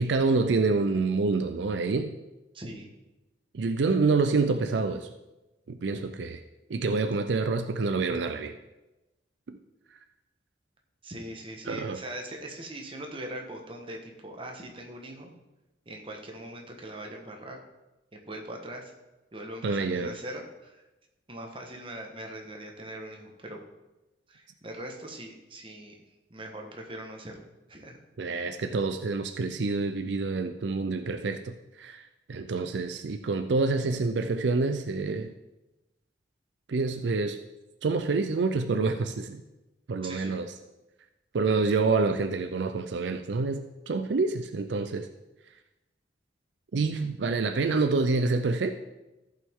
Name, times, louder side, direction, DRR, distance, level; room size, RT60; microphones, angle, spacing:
voice 1, 0.0-2.1 3.5-5.1 5.7-6.4 6.7-8.5 9.5-9.6 11.7-12.0 19.6-20.2 28.2-35.3 36.7-37.4 37.8-39.4 39.9-40.5 41.3-45.1 46.7-48.7, right 3 dB, 75° right, 8 dB, 0.5 m, -27 dB
voice 2, 2.5-2.9 11.0-15.3 15.8-17.6 18.1-18.9 19.3-20.8 21.3-23.6 24.3-26.0 26.3-28.0 40.0-40.4, right 1 dB, 30° right, 2 dB, 1.3 m, -41 dB
14.5 x 5.6 x 3.6 m, 1.0 s
head